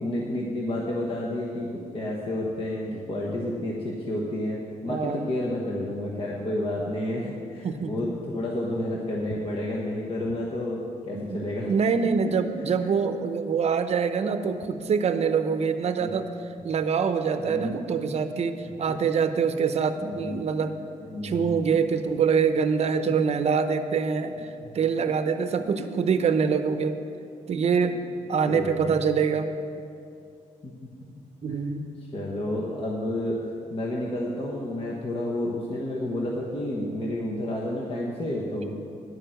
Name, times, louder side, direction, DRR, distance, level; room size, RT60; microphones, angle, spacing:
voice 1, 0.0-11.7 12.6-12.7 16.0-16.1 17.4-17.7 18.9-19.1 20.0-20.4 21.0-21.6 23.1-23.2 24.6-24.7 28.5-29.0 30.6-30.7 31.5-31.6 32.1-33.4 33.7-38.7, left 1 dB, 40° left, -3 dB, 1.3 m, -30 dB
voice 2, 4.9-5.3 7.6-7.9 11.1-16.3 16.6-20.7 21.2-24.5 24.7-27.0 27.5-29.5 31.4-31.8, right 6 dB, 50° right, 9 dB, 0.7 m, -25 dB
10.5 x 6.8 x 7.8 m, 2.5 s
cardioid pair, 115°, 14 cm